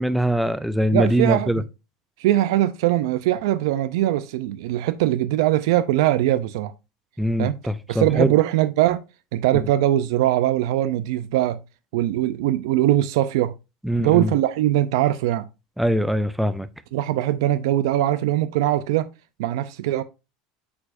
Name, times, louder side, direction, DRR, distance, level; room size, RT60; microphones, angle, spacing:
voice 1, 0.0-1.6 7.2-8.3 13.8-14.3 15.8-16.7, equal, ahead, 0.3 m, -22 dB
voice 2, 0.9-1.6 2.2-6.7 7.4-7.6 7.9-9.0 9.3-11.6 11.9-13.5 14.0-15.5 16.9-19.1 19.4-20.0, right 14 dB, 70° right, 0.4 m, -21 dB
8.3 x 4.6 x 2.5 m
cardioid pair, 175°, 2 cm